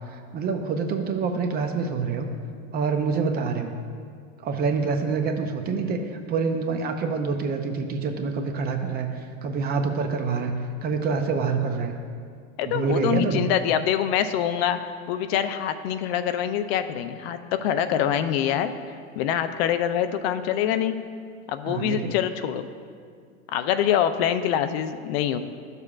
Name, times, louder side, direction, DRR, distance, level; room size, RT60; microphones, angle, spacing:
voice 1, 0.1-2.3 2.7-3.7 4.4-6.0 6.3-11.9 12.6-13.5 21.7-22.1, right 5 dB, 25° right, 5 dB, 0.6 m, -26 dB
voice 2, 12.6-14.8 15.1-18.7 19.2-20.9 21.5-22.6 23.5-25.4, left 9 dB, 60° left, 9 dB, 0.5 m, -25 dB
12.5 x 6.7 x 2.4 m, 2.1 s
supercardioid pair, 130°, 35 cm